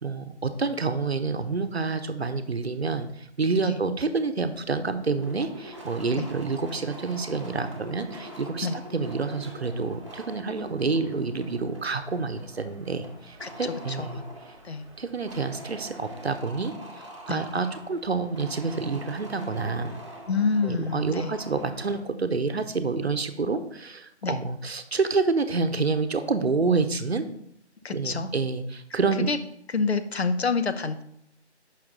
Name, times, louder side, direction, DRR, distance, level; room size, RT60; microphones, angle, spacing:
voice 1, 0.0-8.7 8.9-14.2 15.0-20.0 20.6-27.3 27.9-29.3, right 4 dB, 65° right, 9 dB, 0.8 m, -28 dB
sound 1, 5.1-22.0, right 1 dB, 25° right, 1.0 m, -44 dB
voice 2, 13.4-14.1 14.6-14.8 17.3-17.5 20.3-21.3 24.2-24.4 27.8-28.3 29.2-29.4 29.7-31.0, left 4 dB, 65° left, 10 dB, 0.7 m, -27 dB
6.5 x 5.8 x 3.7 m, 0.73 s
figure-of-eight pair, 170°, 35 cm